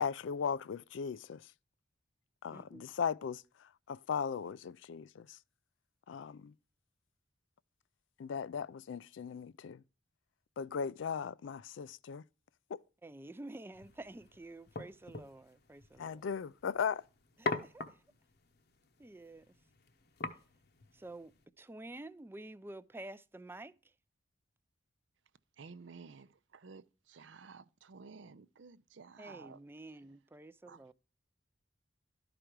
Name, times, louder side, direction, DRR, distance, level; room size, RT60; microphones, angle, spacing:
voice 1, 0.0-1.5 2.4-5.4 6.1-6.5 8.2-9.8 10.6-12.2 12.7-12.8 16.0-17.1, left 6 dB, 75° left, 0.4 m, -38 dB
voice 2, 2.5-2.9 13.0-16.2 17.4-18.0 19.0-19.5 20.9-23.7 29.2-30.9, right 2 dB, 10° right, 0.4 m, -49 dB
sound 1, 13.7-21.4, left 3 dB, 55° left, 0.9 m, -44 dB
voice 3, 25.6-29.6 30.7-30.8, right 5 dB, 75° right, 0.5 m, -53 dB
12.5 x 5.0 x 4.5 m
head